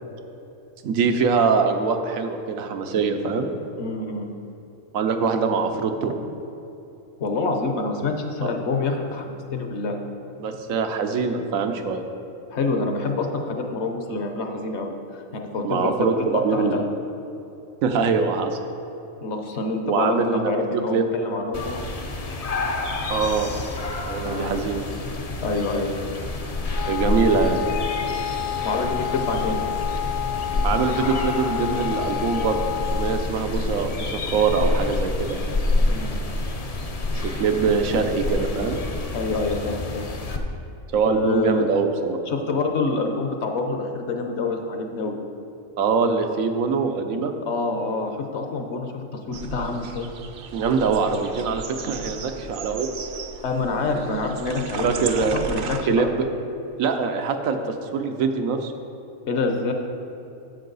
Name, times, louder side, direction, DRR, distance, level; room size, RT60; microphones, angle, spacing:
voice 1, 0.8-3.5 4.9-6.1 8.4-8.5 10.4-12.0 15.6-16.8 17.8-18.6 19.8-20.5 20.9-21.0 23.1-23.5 24.1-24.9 26.9-27.6 30.6-32.6 32.9-35.4 37.2-38.8 40.9-42.2 45.8-47.3 50.5-53.1 54.8-55.4 55.9-56.3 56.8-58.7, right 5 dB, 90° right, 6 dB, 1.2 m, -23 dB
voice 2, 3.8-4.3 7.2-10.0 12.5-16.1 16.3-16.9 19.2-21.7 24.2-24.6 25.4-25.9 28.6-29.6 35.8-36.2 39.1-40.1 41.0-41.7 42.3-45.2 47.4-50.1 53.4-56.1 59.3-59.7, left 3 dB, 60° left, 4 dB, 1.1 m, -27 dB
sound 1, 21.5-40.4, left 2 dB, 40° left, 0.6 m, -28 dB
Wind instrument woodwind instrument, 26.7-33.3, left 12 dB, 85° left, 1.2 m, -30 dB
sound 2, 49.3-55.8, right 6 dB, 55° right, 0.7 m, -35 dB
10.0 x 7.5 x 4.0 m, 2.8 s
omnidirectional pair, 1.4 m